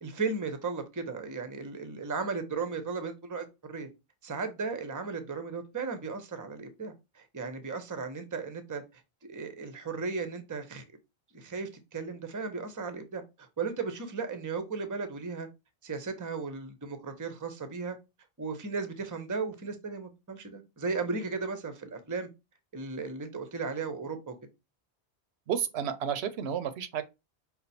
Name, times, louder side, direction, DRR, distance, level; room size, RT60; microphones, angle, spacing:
voice 1, 0.0-3.9 4.2-8.8 9.3-10.8 11.3-15.5 15.8-18.0 18.4-22.3 22.7-24.3, right 4 dB, 20° right, 0.6 m, -35 dB
voice 2, 25.5-27.0, right 8 dB, 75° right, 0.8 m, -31 dB
5.3 x 2.3 x 4.1 m
omnidirectional pair, 1.1 m